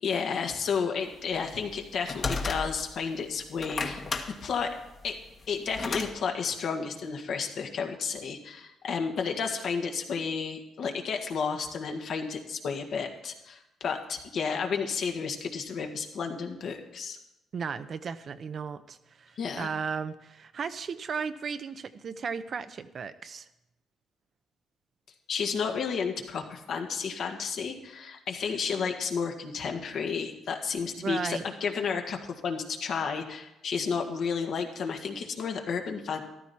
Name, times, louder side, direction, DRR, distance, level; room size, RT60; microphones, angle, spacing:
voice 1, 0.0-4.0 4.4-4.7 5.0-5.2 5.5-17.2 19.4-19.7 25.3-36.2, left 6 dB, 65° left, 3 dB, 1.7 m, -32 dB
sound 1, 1.3-3.0 3.5-6.1, left 3 dB, 40° left, 1.5 m, -33 dB
voice 2, 17.5-23.5 31.0-31.4, right 6 dB, 50° right, 11 dB, 0.7 m, -35 dB
14.0 x 12.0 x 4.3 m, 0.91 s
cardioid pair, 90°, 0 cm